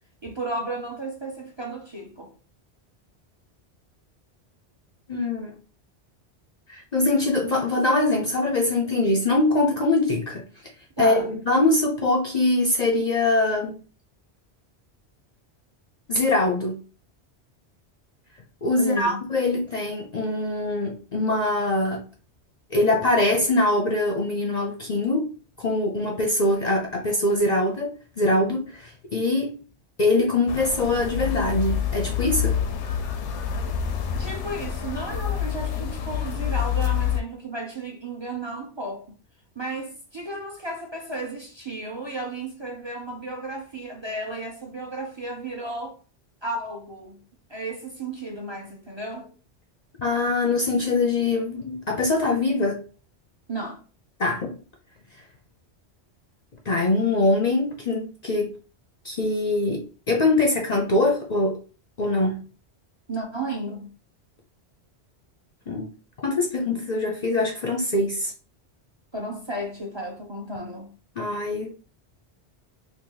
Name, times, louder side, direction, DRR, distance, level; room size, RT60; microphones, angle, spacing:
voice 1, 0.2-2.3 11.0-11.3 18.8-19.2 34.2-39.1 39.5-46.0 46.4-47.2 47.5-49.4 53.5-53.8 63.1-63.9 69.1-70.9, right 2 dB, 30° right, 0.6 m, -33 dB
voice 2, 5.1-5.6 6.7-10.4 11.0-13.8 16.1-16.8 18.6-22.0 22.7-29.6 30.0-32.6 50.0-52.8 54.2-54.6 56.7-58.5 59.0-61.6 62.0-62.4 65.7-65.9 66.2-68.3 71.2-71.7, left 2 dB, 50° left, 0.6 m, -23 dB
sound 1, 30.5-37.2, left 8 dB, 90° left, 0.9 m, -27 dB
2.9 x 2.6 x 3.7 m
omnidirectional pair, 1.1 m